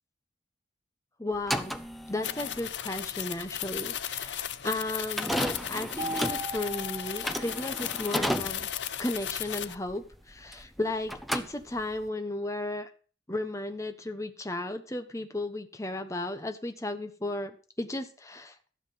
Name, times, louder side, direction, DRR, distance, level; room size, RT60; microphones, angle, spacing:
voice 1, 1.2-1.7 2.1-8.7 9.0-12.9 13.3-18.6, left 2 dB, 15° left, 7 dB, 1.0 m, -34 dB
sound 1, 1.3-10.8 11.1-12.1, equal, ahead, 0.7 m, -34 dB
sound 2, 2.2-9.7, left 10 dB, 85° left, 0.7 m, -36 dB
Mallet percussion, 6.0-8.2, right 2 dB, 35° right, 1.3 m, -39 dB
14.0 x 7.3 x 5.7 m, 0.39 s
head